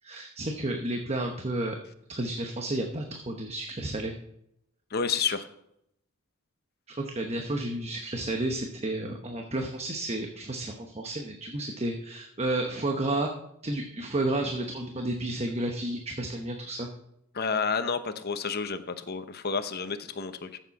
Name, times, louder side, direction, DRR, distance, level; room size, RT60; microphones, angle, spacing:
voice 1, 0.0-1.8 2.1-4.2 5.2-5.3 6.9-13.3 13.6-16.9, right 1 dB, 30° right, 3 dB, 1.0 m, -31 dB
voice 2, 4.9-5.5 17.3-20.6, left 5 dB, 50° left, 10 dB, 0.9 m, -30 dB
14.5 x 7.4 x 4.1 m, 0.78 s
head